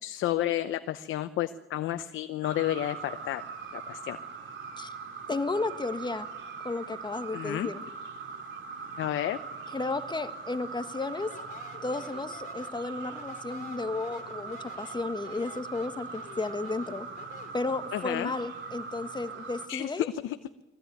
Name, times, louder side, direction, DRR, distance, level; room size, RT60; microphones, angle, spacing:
voice 1, 0.0-3.4 3.7-4.2 7.3-7.7 9.0-9.4 17.9-18.3 19.7-20.4, left 13 dB, 80° left, 9 dB, 0.9 m, -31 dB
sound 1, 2.4-19.7, right 5 dB, 70° right, 3.0 m, -41 dB
voice 2, 5.3-6.3 6.6-7.8 9.7-11.3 11.8-17.1 17.5-20.1, left 3 dB, 20° left, 9 dB, 1.6 m, -33 dB
Speech, 10.9-17.6, left 6 dB, 45° left, 3.4 m, -50 dB
22.5 x 15.0 x 9.3 m, 1.1 s
cardioid pair, 90°, 20 cm